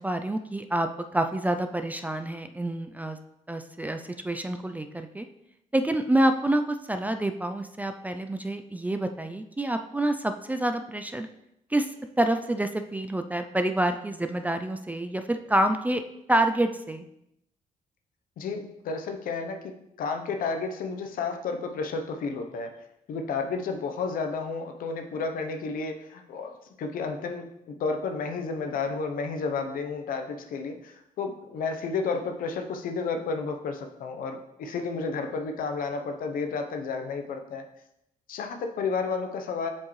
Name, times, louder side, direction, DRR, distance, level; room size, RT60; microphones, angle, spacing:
voice 1, 0.0-3.2 3.5-5.3 5.7-11.3 11.7-11.9 12.2-16.0 16.3-17.1, right 1 dB, 10° right, 7 dB, 0.3 m, -27 dB
voice 2, 18.4-19.6 20.0-22.7 23.1-26.5 26.8-37.7 38.3-39.7, left 4 dB, 75° left, 6 dB, 0.8 m, -31 dB
7.2 x 4.6 x 3.1 m, 0.83 s
cardioid pair, 110°, 15 cm